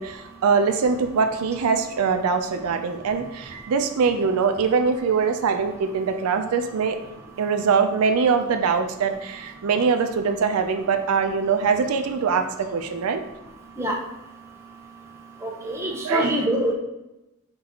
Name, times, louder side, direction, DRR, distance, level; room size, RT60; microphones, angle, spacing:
voice 1, 0.0-7.0 7.4-13.2 16.0-16.3, right 5 dB, 80° right, 6 dB, 0.4 m, -23 dB
voice 2, 15.4-16.7, equal, 10° right, -1 dB, 0.7 m, -25 dB
4.5 x 4.0 x 2.8 m, 0.94 s
head